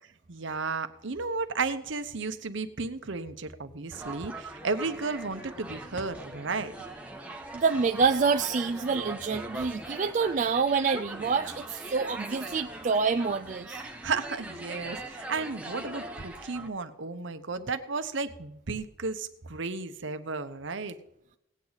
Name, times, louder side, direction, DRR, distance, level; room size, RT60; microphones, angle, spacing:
voice 1, 0.3-6.7 14.0-21.0, right 4 dB, 65° right, 10 dB, 0.9 m, -33 dB
sound 1, 3.9-16.7, right 2 dB, 5° right, 1.0 m, -41 dB
voice 2, 7.5-13.8, right 5 dB, 40° right, 6 dB, 0.4 m, -27 dB
18.0 x 8.7 x 4.0 m, 0.81 s
head